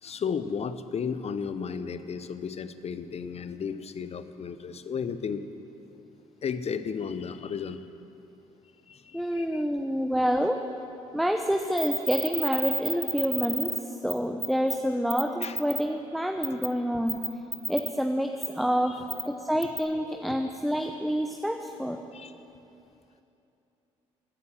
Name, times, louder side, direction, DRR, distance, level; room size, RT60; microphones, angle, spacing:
voice 1, 0.0-5.5 6.4-7.8 8.9-9.7 15.4-15.6 18.9-19.0 22.1-22.3, left 6 dB, 40° left, 12 dB, 0.8 m, -34 dB
voice 2, 9.1-10.6 11.1-17.2 17.7-22.0, equal, ahead, 5 dB, 0.8 m, -28 dB
sound 1, 11.8-13.8 14.1-14.2 14.4-14.8 15.1-15.8 16.4-16.7 17.1-17.9 18.4-18.5 19.1-19.2 19.6-19.8, right 2 dB, 15° right, 1.3 m, -30 dB
15.0 x 9.6 x 7.6 m, 2.8 s
hypercardioid pair, 50°, 16 cm